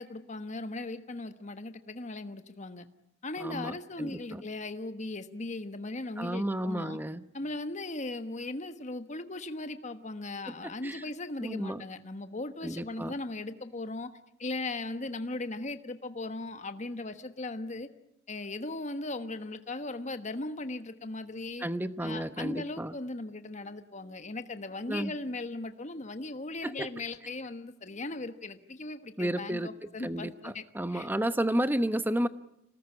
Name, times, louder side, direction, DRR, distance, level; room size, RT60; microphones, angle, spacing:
voice 1, 0.0-2.9 3.2-7.0 7.3-14.1 14.4-17.9 18.3-21.6 22.0-31.1, left 2 dB, 40° left, 9 dB, 1.3 m, -38 dB
voice 2, 3.4-4.4 6.2-7.2 10.8-11.0 11.4-11.8 12.6-13.2 21.6-22.9 24.9-25.1 26.6-26.9 29.2-29.7 30.0-32.3, right 1 dB, 10° right, 12 dB, 1.0 m, -32 dB
27.0 x 19.0 x 9.7 m, 0.79 s
head